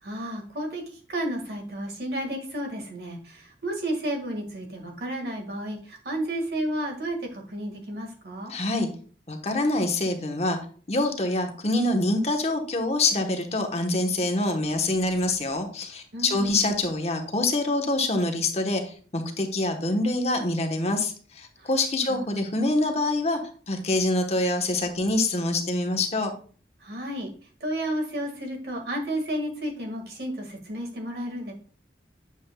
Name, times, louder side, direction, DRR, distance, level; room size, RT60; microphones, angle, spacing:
voice 1, 0.0-8.5 16.1-16.7 21.6-21.7 22.1-22.3 26.8-27.3 27.6-31.5, right 1 dB, 60° right, 2 dB, 1.8 m, -32 dB
voice 2, 8.5-8.9 9.3-10.6 10.9-23.4 23.7-26.3, left 2 dB, 35° left, 4 dB, 1.1 m, -25 dB
9.1 x 7.2 x 2.3 m, 0.42 s
head